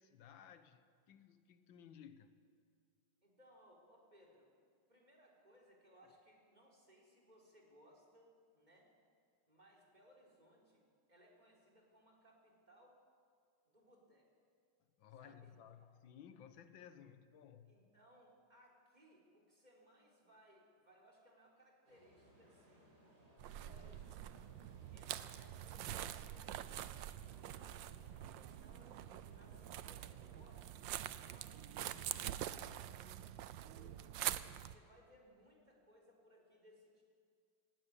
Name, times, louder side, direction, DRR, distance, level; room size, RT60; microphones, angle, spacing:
voice 1, 0.0-2.4 15.0-17.9, left 8 dB, 85° left, 1.7 m, -58 dB
voice 2, 3.2-4.5 4.9-8.9 9.5-13.0 13.6-14.3 15.2-15.5 15.8-15.9 17.7-22.9 23.4-24.5 24.9-26.8 27.2-27.8 28.3-34.1 34.7-37.0, equal, 20° right, 3.8 m, -66 dB
sound 1, 21.9-30.8, equal, 55° right, 5.2 m, -65 dB
sound 2, 23.4-34.8, right 12 dB, 80° right, 1.4 m, -45 dB
17.5 x 17.0 x 9.9 m
omnidirectional pair, 2.0 m